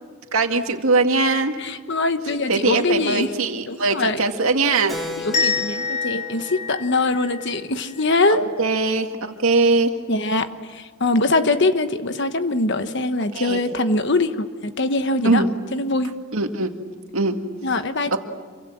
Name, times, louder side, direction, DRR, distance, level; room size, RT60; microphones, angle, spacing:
voice 1, 0.3-1.6 2.5-5.0 8.3-9.9 13.3-13.6 15.2-15.5 16.3-16.7 17.1-17.4 18.1-18.2, right 3 dB, 75° right, 5 dB, 2.1 m, -21 dB
voice 2, 1.6-3.3 3.7-4.2 5.2-8.4 10.1-15.4 15.7-16.1 17.6-18.2, left 2 dB, 55° left, 9 dB, 1.3 m, -22 dB
Keyboard (musical), 4.9-9.0, left 4 dB, ahead, 1.9 m, -37 dB
sound 1, 5.3-8.1, left 5 dB, 35° left, 6.2 m, -27 dB
27.5 x 24.5 x 7.5 m, 1.5 s
head